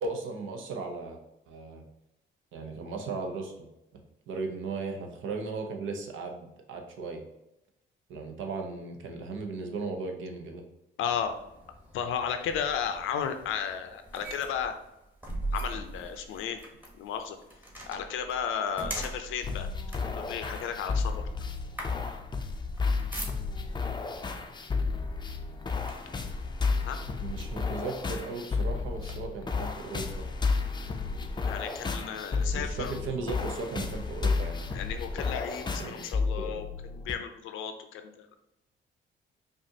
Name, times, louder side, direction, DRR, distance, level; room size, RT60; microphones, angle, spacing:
voice 1, 0.0-1.2 1.5-1.9 2.5-3.7 3.9-4.0 4.3-7.2 8.1-10.7 27.2-30.3 32.5-34.6 35.8-36.0 36.4-36.7, right 3 dB, 80° right, 3 dB, 0.8 m, -36 dB
voice 2, 11.0-11.4 11.9-14.7 15.5-16.6 16.9-17.4 17.9-19.7 20.1-21.5 26.8-27.0 31.4-33.0 34.7-38.3, left 8 dB, 85° left, 7 dB, 0.5 m, -34 dB
sound 1, 11.0-23.8 24.7-24.9 25.3-26.3 26.9-27.0 27.5-29.1, right 1 dB, 10° right, 1.0 m, -42 dB
sound 2, 19.4-37.1, left 4 dB, 25° left, 0.4 m, -32 dB
5.1 x 2.5 x 2.8 m, 0.89 s
cardioid pair, 90°, 20 cm